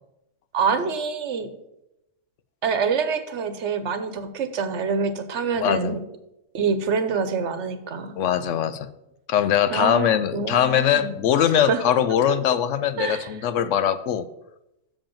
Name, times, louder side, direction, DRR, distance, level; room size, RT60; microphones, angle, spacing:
voice 1, 0.5-1.5 2.6-6.0 6.5-8.2 9.7-11.2 11.6-11.8 13.0-13.3, right 5 dB, 65° right, 10 dB, 1.1 m, -26 dB
voice 2, 5.6-5.9 8.2-8.9 9.3-14.3, left 9 dB, 75° left, 13 dB, 0.9 m, -21 dB
7.0 x 5.1 x 7.1 m, 0.87 s
omnidirectional pair, 1.3 m